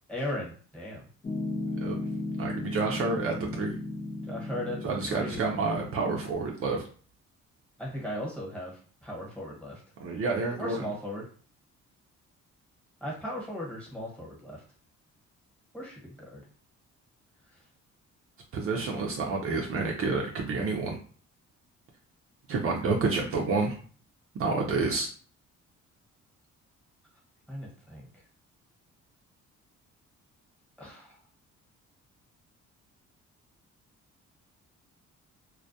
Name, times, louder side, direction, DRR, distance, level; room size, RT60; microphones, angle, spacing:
voice 1, 0.1-1.1 4.2-4.8 5.1-5.5 7.8-9.8 10.6-11.3 13.0-14.6 15.7-16.4 17.5-17.6 27.5-28.1 30.8-31.2, left 1 dB, 5° left, -4 dB, 1.1 m, -37 dB
Piano, 1.2-6.3, left 2 dB, 20° left, 0.5 m, -35 dB
voice 2, 2.4-3.8 4.8-6.8 10.0-10.8 18.5-21.0 22.5-23.8 24.4-25.1, right 4 dB, 50° right, 0 dB, 0.5 m, -29 dB
2.2 x 2.1 x 2.6 m, 0.42 s
cardioid pair, 90°, 30 cm